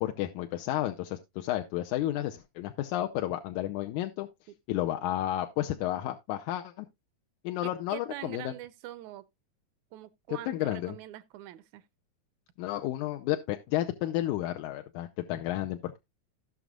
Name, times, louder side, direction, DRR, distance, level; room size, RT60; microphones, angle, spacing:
voice 1, 0.0-4.3 4.7-6.9 7.4-8.5 10.3-11.0 12.6-16.0, left 14 dB, 80° left, 2.1 m, -32 dB
voice 2, 7.6-9.3 9.9-11.8, right 14 dB, 80° right, 1.9 m, -44 dB
16.5 x 6.2 x 2.3 m
omnidirectional pair, 3.5 m